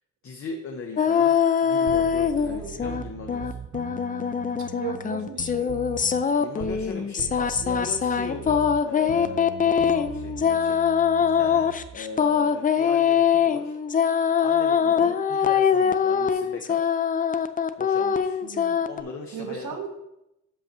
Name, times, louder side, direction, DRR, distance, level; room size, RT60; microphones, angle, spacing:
voice 1, 0.2-1.4 1.6-3.6 6.4-10.9 11.2-13.8 14.4-17.0 17.8-18.4 18.9-19.7, left 4 dB, 45° left, 3 dB, 0.8 m, -39 dB
sound 1, 1.0-3.0 3.3-19.0, left 7 dB, 30° left, 0.4 m, -23 dB
sound 2, 1.9-6.9 7.2-12.0, right 8 dB, 50° right, 0.5 m, -40 dB
voice 2, 4.6-5.7 14.8-15.2 18.4-18.8 19.3-19.9, right 8 dB, 70° right, 4 dB, 1.2 m, -36 dB
5.8 x 5.4 x 6.6 m, 0.88 s
wide cardioid pair, 145°, 30 cm